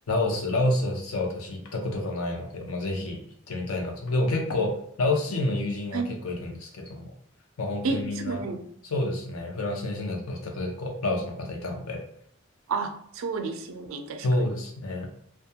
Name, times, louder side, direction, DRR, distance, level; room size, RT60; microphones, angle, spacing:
voice 1, 0.1-3.2 3.5-7.1 7.6-8.4 8.8-12.0 14.2-15.1, left 2 dB, 90° left, 2 dB, 0.6 m, -28 dB
voice 2, 7.8-8.6 12.7-14.5, right 4 dB, 75° right, 7 dB, 0.4 m, -31 dB
2.3 x 2.2 x 2.7 m, 0.69 s
head